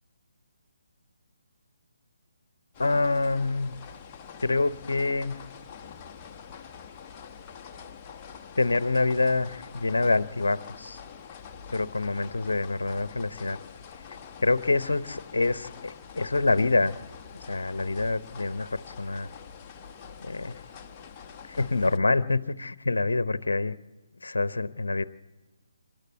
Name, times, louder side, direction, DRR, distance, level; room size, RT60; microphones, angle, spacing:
sound 1, 2.7-22.0, left 7 dB, 20° left, 0.9 m, -45 dB
voice 1, 2.8-3.7 4.4-5.4 8.6-11.0 11.7-13.6 14.4-16.9 17.4-19.3 20.2-20.6 21.5-23.8 24.2-25.0, left 3 dB, 70° left, 15 dB, 0.8 m, -26 dB
26.5 x 12.0 x 8.5 m, 1.2 s
figure-of-eight pair, 140°, 0 cm